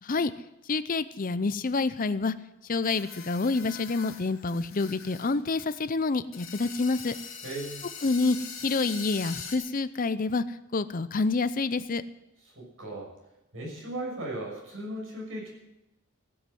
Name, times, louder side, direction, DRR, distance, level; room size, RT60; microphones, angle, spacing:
voice 1, 0.0-0.3 0.7-2.3 2.7-7.1 8.0-8.4 8.6-10.4 10.7-12.0, left 3 dB, 40° left, 14 dB, 0.6 m, -27 dB
sound 1, 2.8-5.3 5.6-5.7 6.3-9.6, left 6 dB, 70° left, 2.5 m, -42 dB
voice 2, 7.4-7.8 12.6-13.1 13.5-15.5, right 1 dB, 70° right, -3 dB, 6.2 m, -37 dB
15.5 x 7.9 x 7.8 m, 0.93 s
head